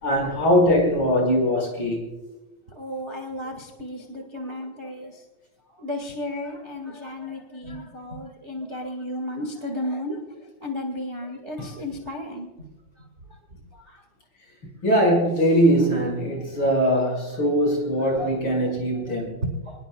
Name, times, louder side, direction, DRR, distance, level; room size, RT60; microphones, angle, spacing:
voice 1, 0.0-2.1 11.6-11.7 14.8-19.4, equal, 40° left, 0 dB, 6.0 m, -21 dB
voice 2, 2.7-5.2 5.8-10.2 10.6-12.7 13.0-13.1 13.7-14.0 18.1-18.3 19.1-19.2 19.4-19.8, left 1 dB, 25° right, 2 dB, 1.7 m, -33 dB
27.0 x 20.5 x 2.3 m, 1.1 s
omnidirectional pair, 3.4 m